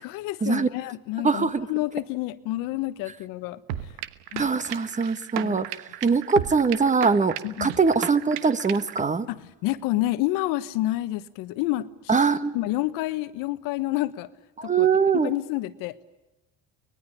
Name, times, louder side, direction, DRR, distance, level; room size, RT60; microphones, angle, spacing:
voice 1, 0.0-3.6 4.3-4.4 5.3-5.6 7.4-7.8 9.3-11.9 12.5-14.3 14.6-14.9 15.2-16.0, left 17 dB, 75° left, 13 dB, 1.4 m, -29 dB
voice 2, 1.2-1.7 4.4-5.7 6.0-9.3 12.1-12.5 14.6-15.3, right 5 dB, 20° right, 12 dB, 1.6 m, -22 dB
sound 1, 3.7-9.0, right 13 dB, 85° right, 1.3 m, -35 dB
24.0 x 21.0 x 9.9 m, 1.0 s
supercardioid pair, 105°, 34 cm